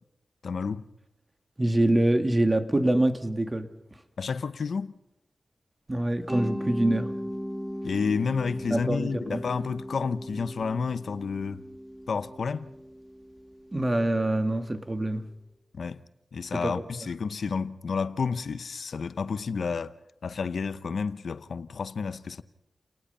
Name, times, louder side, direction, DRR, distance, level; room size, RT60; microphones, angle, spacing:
voice 1, 0.4-0.8 4.2-4.9 7.8-11.6 12.1-12.7 15.8-16.0 16.3-19.9 20.2-22.4, left 5 dB, 85° left, 0.9 m, -30 dB
voice 2, 1.6-3.7 5.9-7.1 8.7-9.4 13.7-15.3 16.5-17.1, right 1 dB, 30° right, 2.2 m, -25 dB
Mallet percussion, 6.3-15.0, equal, 10° right, 3.2 m, -38 dB
30.0 x 19.0 x 5.6 m
cardioid pair, 50°, 0 cm